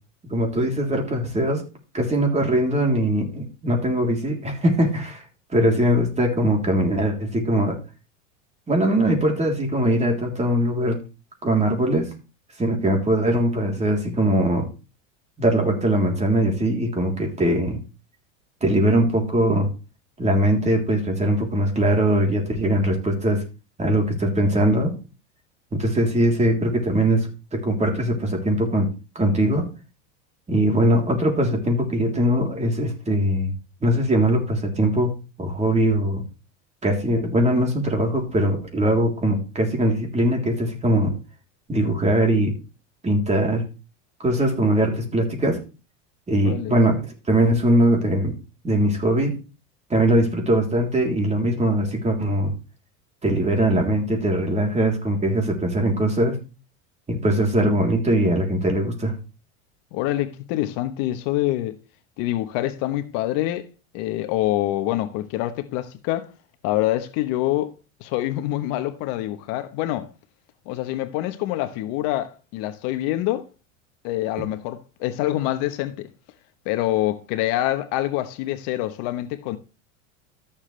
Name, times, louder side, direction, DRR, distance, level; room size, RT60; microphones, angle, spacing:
voice 1, 0.2-1.6 1.9-5.2 5.5-7.8 8.7-11.0 11.4-12.1 12.6-14.7 15.4-17.8 18.6-19.7 20.2-23.4 23.8-24.9 25.7-28.9 29.2-29.7 30.5-33.5 33.8-35.1 35.4-36.2 36.8-41.1 41.7-42.5 43.0-43.6 44.2-45.6 46.3-48.3 48.6-49.4 49.9-52.5 53.2-56.4 57.1-59.1, right 1 dB, 15° right, 3.5 m, -21 dB
voice 2, 46.4-46.8 59.9-61.8 62.2-63.6 63.9-66.3 66.6-67.7 68.0-70.1 70.7-73.5 74.0-76.1 76.6-79.6, left 15 dB, 60° left, 1.2 m, -26 dB
13.5 x 7.2 x 3.3 m
supercardioid pair, 105°, 38 cm